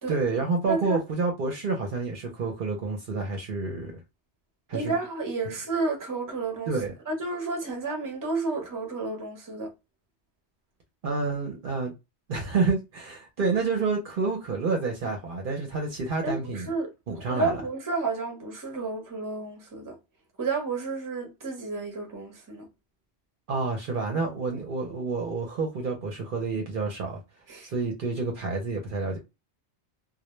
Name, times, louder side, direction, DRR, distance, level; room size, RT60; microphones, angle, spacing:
voice 1, 0.1-4.0 4.7-4.9 6.7-6.9 11.0-11.9 12.3-16.7 17.1-17.6 23.5-27.2 27.6-29.2, right 4 dB, 60° right, 0.7 m, -29 dB
voice 2, 0.7-1.0 4.7-6.7 7.1-9.7 16.2-16.9 17.2-20.0 20.4-22.7 27.5-27.7, right 3 dB, 20° right, 0.6 m, -31 dB
2.1 x 2.1 x 3.0 m
omnidirectional pair, 1.1 m